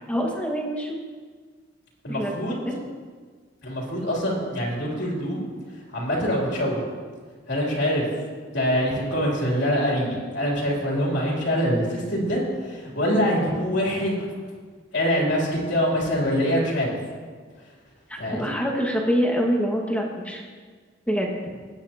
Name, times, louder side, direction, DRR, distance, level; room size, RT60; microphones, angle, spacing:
voice 1, 0.1-1.0 2.1-2.3 2.6-2.8 18.2-20.4 21.1-21.3, equal, 10° left, -1 dB, 1.8 m, -25 dB
voice 2, 2.0-2.6 3.6-5.4 5.9-6.8 7.5-8.0 8.5-14.3 14.9-17.0 18.2-18.5, equal, 65° left, -4 dB, 3.3 m, -24 dB
20.5 x 8.9 x 3.0 m, 1.5 s
head